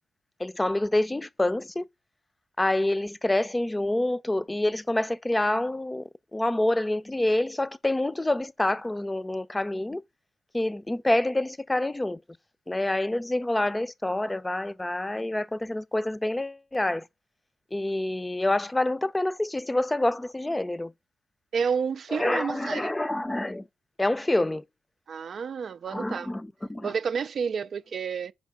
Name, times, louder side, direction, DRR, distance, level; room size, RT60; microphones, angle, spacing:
voice 1, 0.4-1.8 2.6-10.0 10.5-12.2 12.7-17.1 17.7-20.9 22.1-23.7 24.0-24.6 25.9-26.9, left 1 dB, 20° left, 0.5 m, -27 dB
voice 2, 21.5-22.9 25.1-26.3 26.8-28.3, right 6 dB, 65° right, 0.3 m, -30 dB
5.3 x 5.1 x 3.6 m
supercardioid pair, 45°, 0 cm